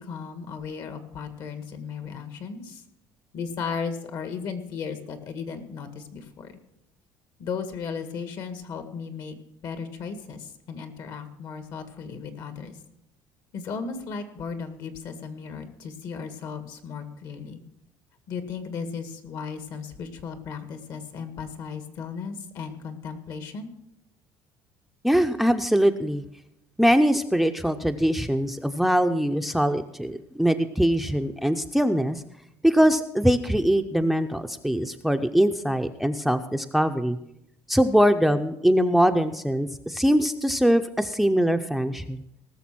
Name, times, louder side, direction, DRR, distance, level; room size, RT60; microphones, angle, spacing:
voice 1, 0.0-2.8 3.3-6.5 7.4-9.3 9.6-12.8 13.5-17.6 18.3-23.7, left 5 dB, 60° left, 9 dB, 1.9 m, -35 dB
voice 2, 25.0-26.2 26.8-32.2 32.6-37.2 37.7-42.2, equal, ahead, 8 dB, 0.6 m, -22 dB
18.5 x 6.7 x 6.1 m, 0.81 s
cardioid pair, 120°, 7 cm